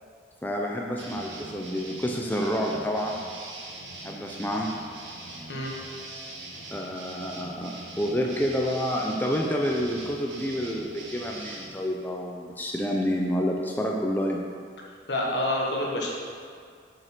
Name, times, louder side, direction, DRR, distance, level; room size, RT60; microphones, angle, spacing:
voice 1, 0.4-3.2 4.0-4.7 6.7-14.4, equal, 10° left, -1 dB, 0.6 m, -28 dB
sound 1, 1.0-11.7, right 2 dB, 75° right, 1.7 m, -42 dB
voice 2, 15.1-16.1, left 1 dB, 70° left, -2 dB, 1.6 m, -27 dB
7.5 x 5.5 x 5.9 m, 2.1 s
head